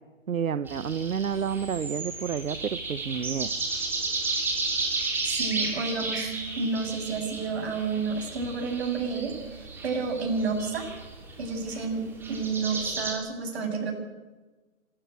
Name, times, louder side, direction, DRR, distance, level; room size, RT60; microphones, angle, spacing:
voice 1, 0.3-3.5, right 7 dB, 80° right, 13 dB, 1.1 m, -30 dB
sound 1, 0.7-13.1, right 3 dB, 5° right, 2.7 m, -33 dB
voice 2, 5.3-10.9 11.4-13.9, right 4 dB, 50° right, 2 dB, 7.3 m, -30 dB
26.0 x 13.5 x 9.2 m, 1.3 s
hypercardioid pair, 160°, 41 cm